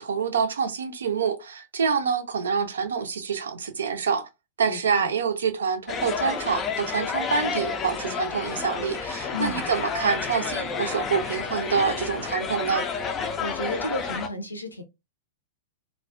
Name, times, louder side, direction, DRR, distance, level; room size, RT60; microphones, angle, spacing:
voice 1, 0.0-4.3 4.6-12.9, right 6 dB, 70° right, 0.5 m, -26 dB
voice 2, 4.7-5.1 9.3-9.7 13.4-14.8, left 1 dB, 85° left, 0.5 m, -33 dB
sound 1, 5.9-14.3, left 5 dB, 25° left, 0.3 m, -30 dB
2.3 x 2.1 x 2.5 m
figure-of-eight pair, 100°, 0 cm